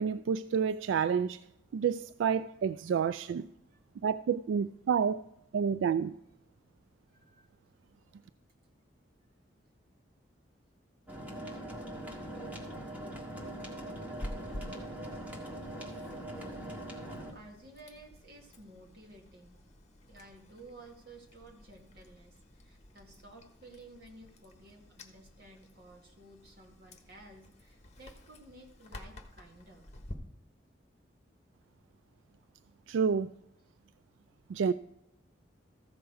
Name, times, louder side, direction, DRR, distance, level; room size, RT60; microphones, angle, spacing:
voice 1, 0.0-1.4 1.7-3.4 4.0-5.2 5.5-6.1 32.9-33.3 34.5-34.7, right 7 dB, 85° right, 0.3 m, -29 dB
voice 2, 7.1-7.5 17.3-19.6 20.1-29.9, right 2 dB, 55° right, 2.1 m, -54 dB
sound 1, 11.1-17.3, right 1 dB, 10° right, 1.7 m, -42 dB
Chewing mastication, 14.1-30.1, left 1 dB, 35° left, 1.3 m, -50 dB
14.5 x 6.3 x 4.6 m
head